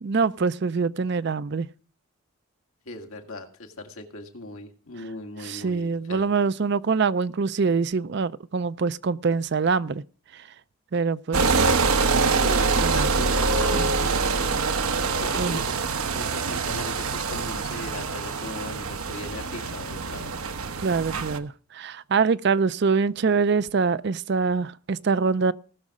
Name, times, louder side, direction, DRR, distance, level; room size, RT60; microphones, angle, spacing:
voice 1, 0.0-1.7 5.4-10.0 10.3-10.4 10.9-11.7 12.8-13.2 13.8-14.0 15.4-15.6 20.8-25.5, right 5 dB, 50° right, 0.4 m, -24 dB
voice 2, 2.9-6.3 12.3-14.6 15.2-20.4, left 2 dB, 80° left, 1.9 m, -38 dB
sound 1, 11.3-21.4, right 4 dB, 90° right, 1.0 m, -25 dB
18.5 x 6.4 x 4.8 m
head